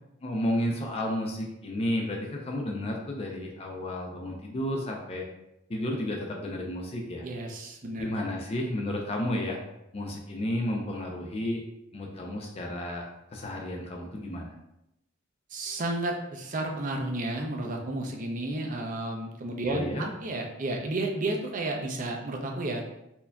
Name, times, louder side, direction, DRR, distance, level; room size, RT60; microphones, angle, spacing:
voice 1, 0.2-5.3 5.7-7.3 8.0-9.6 9.9-11.6 11.9-13.1 13.3-14.5 19.7-20.1, left 1 dB, 30° left, 1 dB, 0.4 m, -32 dB
voice 2, 7.2-8.1 15.5-22.8, right 2 dB, 40° right, 2 dB, 0.5 m, -32 dB
4.4 x 2.6 x 2.2 m, 0.86 s
head